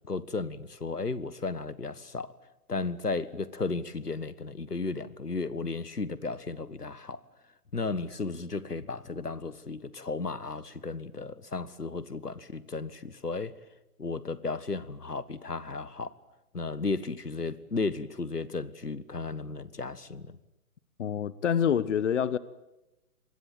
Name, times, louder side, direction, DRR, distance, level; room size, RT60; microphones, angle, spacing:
voice 1, 0.0-2.3 2.7-7.2 7.7-13.5 14.0-16.2 16.5-20.4, left 3 dB, 85° left, 1.6 m, -34 dB
voice 2, 21.0-22.4, left 8 dB, 50° left, 1.1 m, -26 dB
26.0 x 20.5 x 9.1 m
figure-of-eight pair, 130°, 46 cm